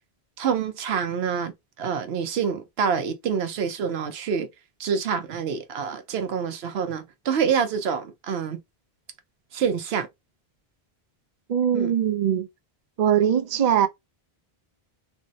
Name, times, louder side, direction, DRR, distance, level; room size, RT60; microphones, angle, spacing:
voice 1, 0.4-1.5 1.8-4.5 4.8-8.6 9.5-10.1 11.7-11.9, right 6 dB, 80° right, 0.9 m, -26 dB
voice 2, 11.5-12.5 13.0-13.9, right 9 dB, 55° right, 0.5 m, -21 dB
3.3 x 2.0 x 2.6 m
omnidirectional pair, 1.1 m